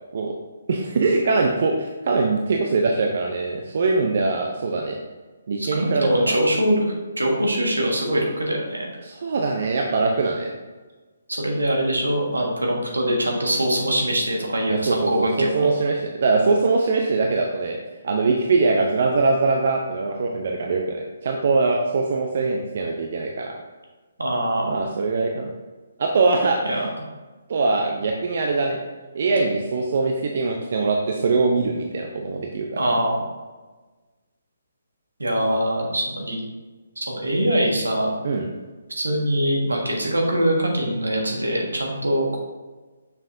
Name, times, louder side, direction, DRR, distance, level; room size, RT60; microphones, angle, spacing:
voice 1, 0.7-5.0 5.5-6.4 9.0-10.5 14.7-17.8 18.0-23.6 24.7-25.5 26.0-26.9 27.5-28.8 29.1-32.8 38.2-38.5, right 3 dB, 50° right, 1 dB, 0.6 m, -22 dB
voice 2, 5.6-8.8 11.3-15.7 24.2-24.8 26.6-26.8 32.7-33.2 35.2-36.4 37.0-38.1 39.0-42.4, right 1 dB, 80° right, 0 dB, 1.6 m, -23 dB
6.9 x 5.6 x 2.7 m, 1.3 s
figure-of-eight pair, 140°, 0 cm